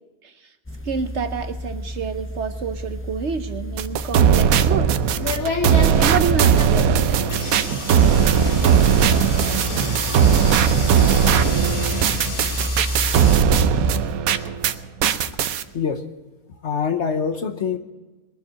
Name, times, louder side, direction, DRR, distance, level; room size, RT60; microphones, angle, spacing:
voice 1, 0.2-0.5 0.8-4.9 6.0-7.2, right 6 dB, 60° right, 9 dB, 1.0 m, -28 dB
sound 1, 0.7-14.0, left 2 dB, 20° left, 0.4 m, -31 dB
sound 2, 3.8-14.7 15.0-15.6, right 8 dB, 90° right, 1.1 m, -18 dB
sound 3, 4.9-13.4, left 2 dB, 85° left, 3.1 m, -31 dB
voice 2, 16.5-17.8, left 6 dB, 55° left, 7 dB, 1.1 m, -25 dB
21.0 x 7.2 x 8.5 m, 1.2 s
omnidirectional pair, 1.5 m